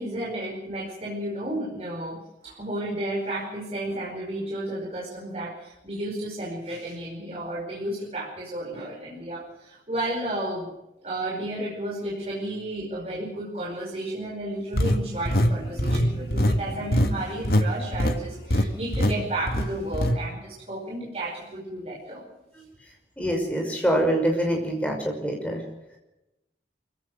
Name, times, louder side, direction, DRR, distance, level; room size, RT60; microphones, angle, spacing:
voice 1, 0.0-10.7 11.0-22.2, right 1 dB, 35° right, -3 dB, 5.1 m, -32 dB
sound 1, 14.7-17.7 17.9-18.2 18.5-18.7 18.9-19.2 19.5-20.2, equal, 60° left, 1.9 m, -22 dB
voice 2, 23.2-25.6, equal, 10° left, 1 dB, 5.9 m, -25 dB
24.5 x 16.0 x 6.7 m, 0.92 s
head